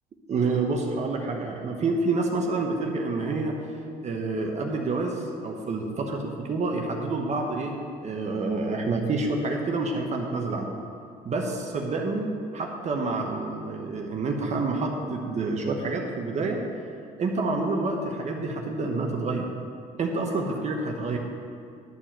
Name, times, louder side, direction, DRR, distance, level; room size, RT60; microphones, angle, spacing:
voice 1, 0.3-3.5 4.0-7.7 8.0-10.7 11.2-16.6 17.2-19.5 20.0-21.2, right 3 dB, 40° right, 1 dB, 1.1 m, -28 dB
11.0 x 4.5 x 7.5 m, 2.3 s
cardioid pair, 110°, 17 cm